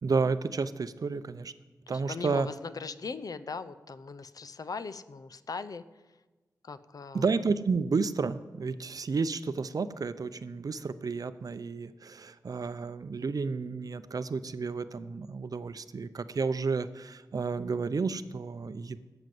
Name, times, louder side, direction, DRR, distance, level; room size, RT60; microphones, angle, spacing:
voice 1, 0.0-1.5 1.9-2.5 7.1-19.0, right 4 dB, 60° right, 13 dB, 0.6 m, -31 dB
voice 2, 1.9-5.8 6.6-7.2, left 4 dB, 60° left, 13 dB, 0.6 m, -39 dB
13.0 x 7.9 x 7.7 m, 1.2 s
wide cardioid pair, 115°, 7 cm